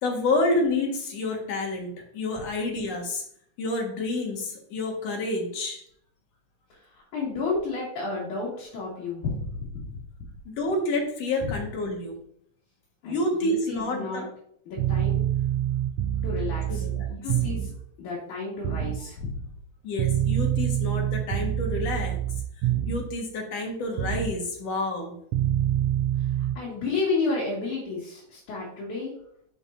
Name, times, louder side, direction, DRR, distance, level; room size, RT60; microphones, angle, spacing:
voice 1, 0.0-3.2 3.6-5.8 10.5-12.2 13.0-14.3 16.7-17.1 19.8-22.2 22.9-25.2, left 2 dB, 60° left, 1 dB, 2.6 m, -28 dB
voice 2, 6.7-9.9 11.4-11.5 13.0-14.2 14.7-15.2 16.2-17.7 18.0-19.3 26.2-29.1, left 3 dB, 75° left, -6 dB, 3.4 m, -32 dB
sound 1, 14.8-17.8 18.6-19.0 20.0-23.2 24.0-24.4 25.3-26.5, right 11 dB, 80° right, 1.5 m, -26 dB
10.0 x 6.6 x 2.6 m, 0.66 s
omnidirectional pair, 3.4 m